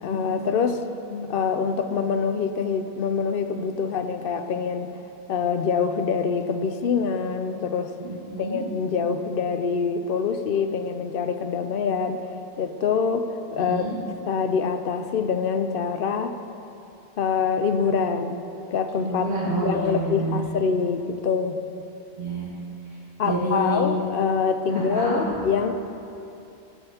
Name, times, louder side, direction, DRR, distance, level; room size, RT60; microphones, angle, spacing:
voice 1, 0.0-0.8 1.1-4.9 5.3-7.9 8.4-12.2 12.6-13.9 14.3-16.4 17.2-18.4 18.7-19.3 19.6-21.6 23.2-25.7, left 5 dB, 65° left, 8 dB, 0.7 m, -25 dB
voice 2, 8.0-8.6 13.6-14.0 19.0-20.4 22.2-22.5 23.2-23.8 24.7-25.3, right 2 dB, 80° right, -9 dB, 2.1 m, -28 dB
14.0 x 9.7 x 2.8 m, 2.7 s
omnidirectional pair, 1.1 m